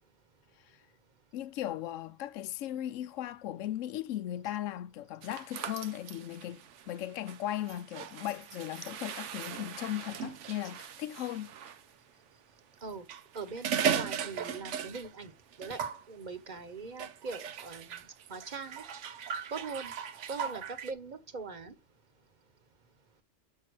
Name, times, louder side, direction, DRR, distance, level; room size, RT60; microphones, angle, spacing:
voice 1, 1.3-11.5, left 12 dB, 80° left, 1.0 m, -37 dB
sound 1, 5.2-11.8 12.9-15.3 15.5-16.0 17.0-20.9, right 8 dB, 70° right, 1.0 m, -38 dB
voice 2, 13.3-15.3 15.6-18.0 18.3-18.8 19.5-19.9 20.3-21.7, right 4 dB, 40° right, 1.1 m, -41 dB
6.7 x 5.6 x 4.6 m
omnidirectional pair, 1.3 m